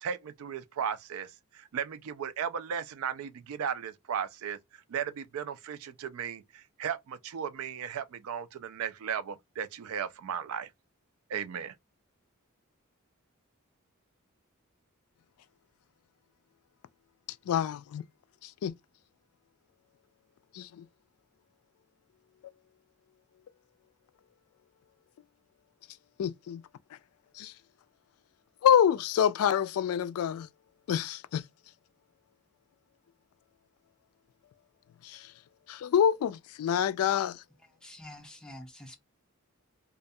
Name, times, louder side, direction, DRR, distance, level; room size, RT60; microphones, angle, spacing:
voice 1, 0.0-1.3 1.7-4.6 4.9-6.4 6.8-10.7 11.3-11.7, right 7 dB, 70° right, 0.4 m, -35 dB
voice 2, 17.5-18.0 18.6-18.7 20.5-20.8 26.2-26.6 27.4-27.5 28.6-30.5 30.9-31.4 35.0-35.2 35.7-37.4, left 8 dB, 80° left, 0.3 m, -26 dB
voice 3, 37.8-39.0, left 1 dB, 5° left, 0.4 m, -47 dB
2.3 x 2.2 x 2.6 m
head